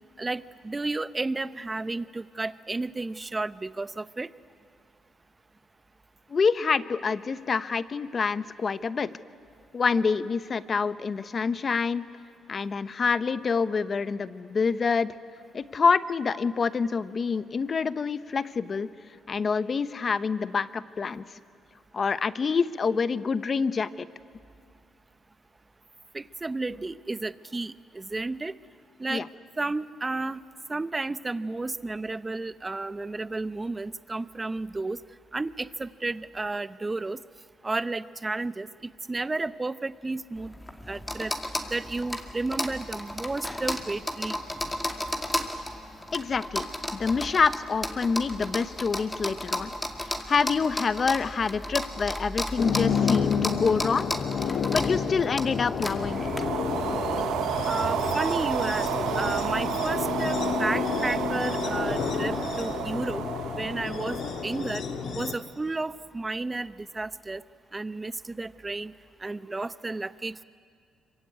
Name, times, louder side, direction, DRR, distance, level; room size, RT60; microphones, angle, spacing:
voice 1, 0.2-4.3 26.1-28.5 29.0-29.3 29.6-30.4 30.7-35.0 35.3-37.2 37.6-40.5 40.9-41.3 41.7-44.4 57.7-58.9 59.1-63.2 63.5-64.8 65.1-67.4 67.7-68.9 69.2-70.4, right 3 dB, 20° right, 15 dB, 0.8 m, -32 dB
voice 2, 6.3-9.1 9.7-12.1 12.5-15.1 15.5-18.9 19.3-21.2 21.9-24.1 29.1-29.3 46.1-46.7 46.9-49.7 50.3-54.1 54.7-56.5, left 5 dB, 40° left, 14 dB, 0.9 m, -26 dB
sound 1, 40.4-56.4, left 1 dB, 10° left, 2.3 m, -34 dB
sound 2, 52.6-65.3, left 6 dB, 65° left, 1.7 m, -30 dB
sound 3, 55.9-65.3, right 10 dB, 90° right, 1.2 m, -32 dB
25.5 x 23.5 x 9.5 m, 2.3 s
cardioid pair, 90°, 0 cm